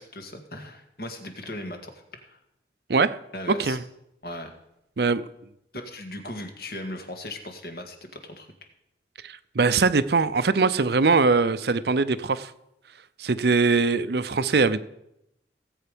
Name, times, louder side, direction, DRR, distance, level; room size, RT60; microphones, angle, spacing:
voice 1, 0.0-2.4 3.3-3.8 4.2-4.5 5.7-8.5, left 1 dB, 60° left, 5 dB, 1.9 m, -38 dB
voice 2, 9.2-12.5 13.2-14.8, right 4 dB, 65° right, 13 dB, 0.6 m, -22 dB
18.0 x 8.0 x 5.2 m, 0.84 s
head